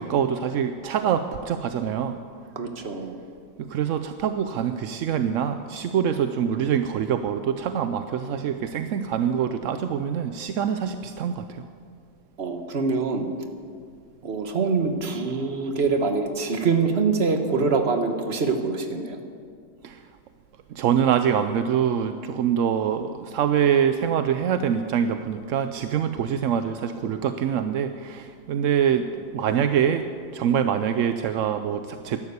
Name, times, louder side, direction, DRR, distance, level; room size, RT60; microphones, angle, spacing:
voice 1, 0.0-2.2 3.6-11.7 19.8-20.0 20.7-30.0 30.3-32.2, right 8 dB, 65° right, 9 dB, 0.8 m, -25 dB
voice 2, 2.5-3.2 12.4-13.3 14.2-19.2, right 4 dB, 40° right, 6 dB, 1.4 m, -24 dB
12.0 x 12.0 x 8.2 m, 2.2 s
omnidirectional pair, 1.8 m